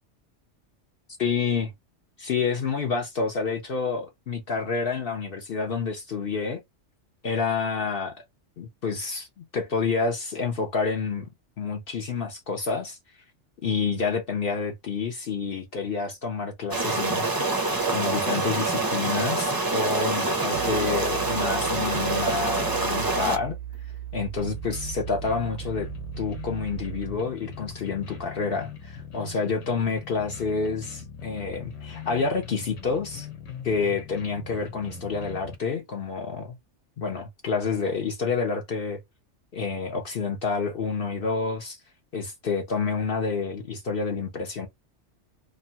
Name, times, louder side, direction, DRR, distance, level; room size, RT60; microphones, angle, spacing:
voice 1, 1.2-1.7 2.2-6.6 7.2-8.2 8.6-11.3 11.6-13.0 13.6-17.3 17.9-23.6 24.1-25.9 26.2-33.3 33.6-36.6 37.0-39.0 39.5-41.8 42.1-44.7, left 4 dB, 55° left, 0.8 m, -28 dB
sound 1, 16.7-23.4, right 3 dB, 25° right, 0.5 m, -26 dB
sound 2, 20.5-27.2, right 12 dB, 70° right, 0.8 m, -37 dB
sound 3, 24.4-35.6, left 7 dB, 85° left, 1.2 m, -41 dB
2.9 x 2.2 x 2.7 m
omnidirectional pair, 1.2 m